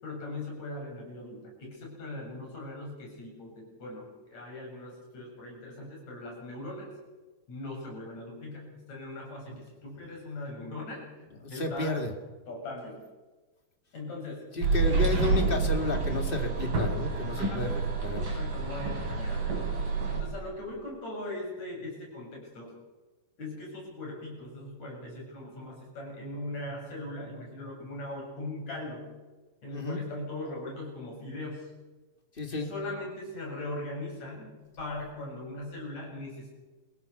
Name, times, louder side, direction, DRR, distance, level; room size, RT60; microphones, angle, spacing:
voice 1, 0.0-6.9 7.5-11.1 11.5-12.1 12.5-13.0 13.9-14.5 14.9-15.1 17.4-17.7 18.2-19.8 20.1-22.8 23.4-29.1 29.6-31.7 32.5-36.5, left 2 dB, 55° left, 0 dB, 8.8 m, -40 dB
voice 2, 11.4-12.1 14.5-18.3 29.7-30.0 32.4-32.7, left 2 dB, 20° left, 5 dB, 2.1 m, -32 dB
sound 1, 14.6-20.2, right 4 dB, 80° right, 7.3 m, -28 dB
28.5 x 16.5 x 7.0 m, 1.3 s
omnidirectional pair, 3.9 m